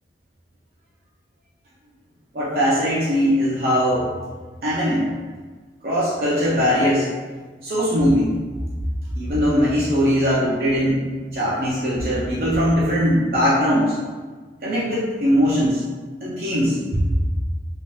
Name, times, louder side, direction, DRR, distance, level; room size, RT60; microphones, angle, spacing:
voice 1, 2.3-4.1 4.6-5.1 5.8-7.1 7.6-8.3 9.1-11.0 11.3-14.0 14.6-15.8 16.2-16.8, equal, 55° right, -8 dB, 0.5 m, -20 dB
2.8 x 2.4 x 3.0 m, 1.4 s
head